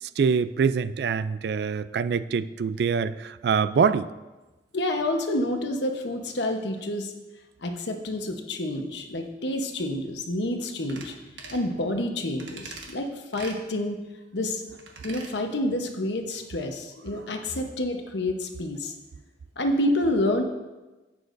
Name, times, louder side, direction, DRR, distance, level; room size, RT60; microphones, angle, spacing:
voice 1, 0.0-4.1, right 6 dB, 60° right, 15 dB, 0.3 m, -24 dB
voice 2, 4.7-7.1 7.6-11.1 11.5-14.0 14.3-14.6 15.0-18.9 19.6-20.4, left 1 dB, 80° left, 4 dB, 1.0 m, -28 dB
sound 1, 10.9-11.1 11.4-11.6 12.4-12.9 13.3-13.6 14.8-15.3 15.7-15.8, right 4 dB, 85° right, 1.3 m, -42 dB
11.5 x 8.5 x 2.6 m, 1.1 s
head